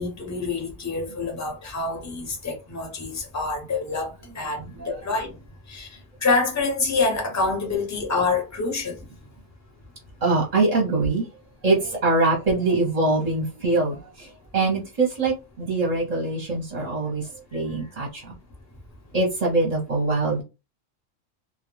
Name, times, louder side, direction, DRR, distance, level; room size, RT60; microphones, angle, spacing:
voice 1, 0.0-4.1 4.3-5.3 5.7-5.9 6.2-9.0, left 3 dB, 20° left, 0.5 m, -26 dB
voice 2, 10.2-11.3 11.6-17.3 17.5-18.3 19.1-20.4, right 3 dB, 40° right, 0.7 m, -23 dB
2.3 x 2.1 x 3.0 m
omnidirectional pair, 1.3 m